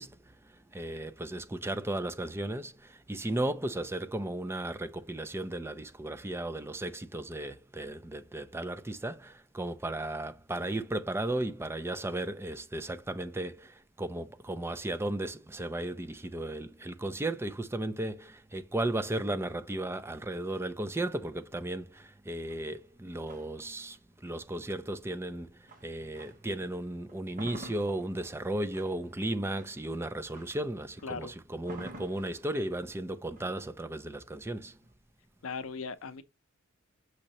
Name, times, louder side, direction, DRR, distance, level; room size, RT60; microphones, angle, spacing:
voice 1, 0.0-34.8, right 1 dB, 10° right, 0.4 m, -35 dB
sound 1, 22.4-26.6 27.0-34.9, right 1 dB, 40° right, 1.0 m, -51 dB
voice 2, 31.0-31.3 35.4-36.2, left 5 dB, 70° left, 0.6 m, -38 dB
6.3 x 2.9 x 2.8 m
head